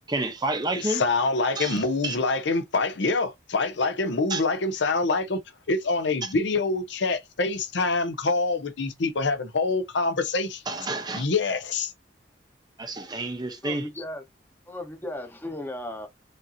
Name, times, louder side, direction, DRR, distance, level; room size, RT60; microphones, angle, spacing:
voice 1, 0.1-1.0 1.6-2.2 4.3-4.4 6.2-6.3 10.7-11.3 12.8-13.9, right 2 dB, 20° right, 0.7 m, -30 dB
voice 2, 0.7-5.4 5.7-10.6 11.1-11.9, left 3 dB, 65° left, 0.7 m, -25 dB
voice 3, 13.6-14.2 14.7-16.1, left 1 dB, 10° left, 0.9 m, -36 dB
5.0 x 2.7 x 2.6 m
head